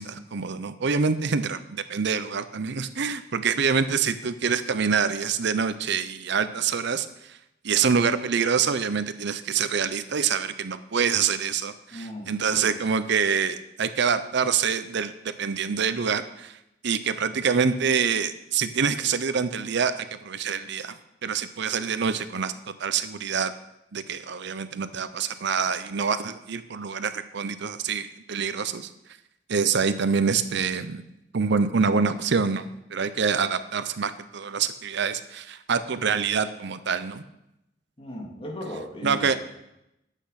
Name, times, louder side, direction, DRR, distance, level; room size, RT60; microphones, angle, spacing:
voice 1, 0.0-7.4 7.6-16.6 16.8-21.0 21.2-22.5 22.8-23.5 23.9-28.9 29.5-31.0 31.3-37.2 39.0-39.4, right 6 dB, 65° right, 12 dB, 0.7 m, -26 dB
voice 2, 11.9-12.9 38.0-39.4, left 1 dB, 30° left, -1 dB, 2.6 m, -37 dB
11.5 x 8.3 x 5.8 m, 0.86 s
head